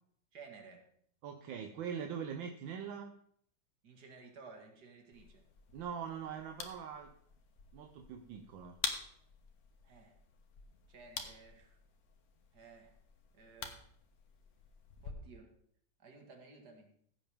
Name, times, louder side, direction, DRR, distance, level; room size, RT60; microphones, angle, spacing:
voice 1, 0.3-0.8 3.8-5.4 9.8-10.2 10.9-11.8 12.5-12.9 13.3-13.8 15.0-15.5 16.0-16.9, right 4 dB, 55° right, 3 dB, 2.3 m, -55 dB
voice 2, 1.2-3.1 5.7-7.1 7.7-8.8, right 7 dB, 80° right, 4 dB, 1.5 m, -42 dB
sound 1, 5.1-15.1, left 5 dB, 55° left, 1.4 m, -47 dB
15.5 x 7.7 x 3.6 m, 0.64 s
omnidirectional pair, 2.1 m